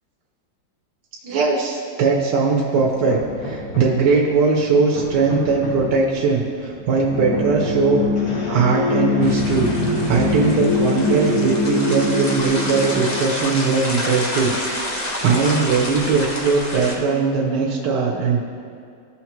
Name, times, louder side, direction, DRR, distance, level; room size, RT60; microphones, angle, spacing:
voice 1, 1.2-8.0 8.5-9.7 10.1-18.4, right 4 dB, 65° right, -2 dB, 1.4 m, -20 dB
Hammer, 2.7-4.1 4.6-6.0 6.6-8.6 9.2-10.1, left 1 dB, 85° left, 2.3 m, -32 dB
sound 1, 7.1-13.0, left 2 dB, 55° left, 2.5 m, -23 dB
sound 2, 9.2-17.0, left 1 dB, 35° left, 0.7 m, -29 dB
14.5 x 5.8 x 3.0 m, 2.3 s
omnidirectional pair, 2.1 m